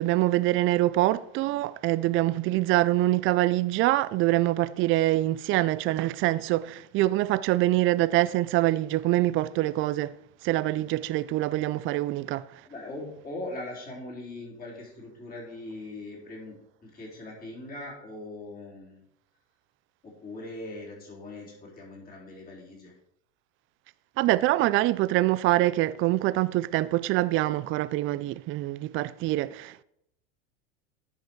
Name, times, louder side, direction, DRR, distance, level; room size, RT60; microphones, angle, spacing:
voice 1, 0.0-10.1 10.4-12.6 24.2-29.8, right 16 dB, 35° right, 0.4 m, -25 dB
voice 2, 12.6-16.6 16.8-19.0 20.0-22.9, left 2 dB, 25° left, 3.9 m, -40 dB
10.5 x 5.6 x 4.6 m
hypercardioid pair, 100°, 35 cm